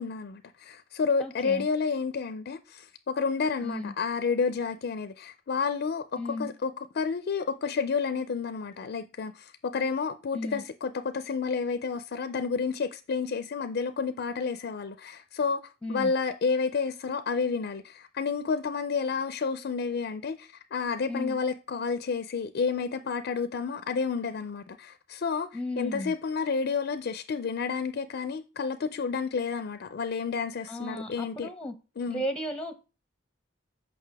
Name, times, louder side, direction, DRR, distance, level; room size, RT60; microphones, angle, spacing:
voice 1, 0.0-15.6 15.9-25.5 25.8-31.5 32.0-32.2, left 5 dB, 55° left, 0.4 m, -30 dB
voice 2, 1.2-1.7 3.6-3.9 6.2-6.5 10.3-10.6 15.8-16.1 21.1-21.4 25.5-26.1 30.7-31.7 32.1-32.7, left 1 dB, 5° left, 0.6 m, -34 dB
6.6 x 5.3 x 3.4 m
head